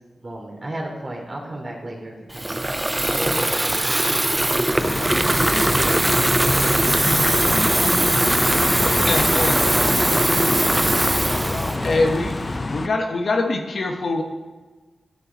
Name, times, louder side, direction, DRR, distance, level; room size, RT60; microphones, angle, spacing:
voice 1, 0.2-4.0, right 1 dB, 40° right, -1 dB, 3.0 m, -34 dB
Water tap faucet / Fill (with liquid), 2.3-12.6, right 1 dB, 20° right, 0.4 m, -21 dB
voice 2, 4.5-10.6 11.3-12.1, equal, ahead, 3 dB, 1.2 m, -34 dB
sound 1, 4.7-12.9, left 2 dB, 45° left, 0.6 m, -26 dB
voice 3, 9.1-9.9 11.8-12.3 12.7-14.2, left 2 dB, 70° left, 2 dB, 1.1 m, -23 dB
14.0 x 6.8 x 4.1 m, 1.3 s
cardioid pair, 55°, 0 cm